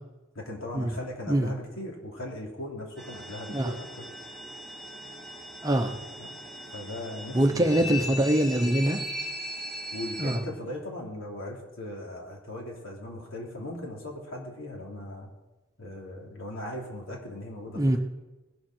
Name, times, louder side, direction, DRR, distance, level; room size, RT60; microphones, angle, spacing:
voice 1, 0.3-4.1 6.2-6.3 6.7-7.9 9.9-15.3 15.8-18.0, left 1 dB, 80° left, -1 dB, 3.2 m, -38 dB
sound 1, 3.0-10.4, left 1 dB, ahead, 2.2 m, -39 dB
voice 2, 5.6-5.9 7.3-9.0 10.2-10.4 17.8-18.0, right 1 dB, 15° right, 6 dB, 0.9 m, -23 dB
19.5 x 7.3 x 6.2 m, 1.1 s
head